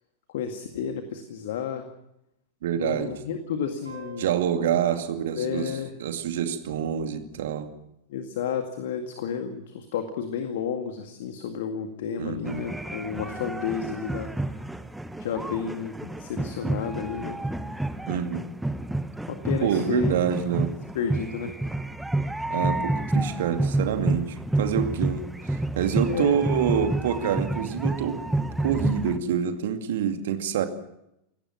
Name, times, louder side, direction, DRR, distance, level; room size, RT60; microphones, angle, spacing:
voice 1, 0.3-1.9 2.8-4.3 4.8-5.0 5.3-5.9 8.1-14.3 15.2-17.4 19.3-20.1 20.9-21.5 26.1-26.4, left 7 dB, 55° left, 7 dB, 2.0 m, -31 dB
voice 2, 2.6-3.2 4.2-5.7 6.0-7.7 12.2-12.7 18.1-18.5 19.6-20.7 22.5-30.7, right 8 dB, 55° right, 7 dB, 2.3 m, -27 dB
sound 1, 3.8-7.0, right 3 dB, 80° right, 5.1 m, -48 dB
sound 2, 12.5-29.2, right 2 dB, 5° right, 1.2 m, -29 dB
30.0 x 17.5 x 5.9 m, 0.83 s
figure-of-eight pair, 90°, 0 cm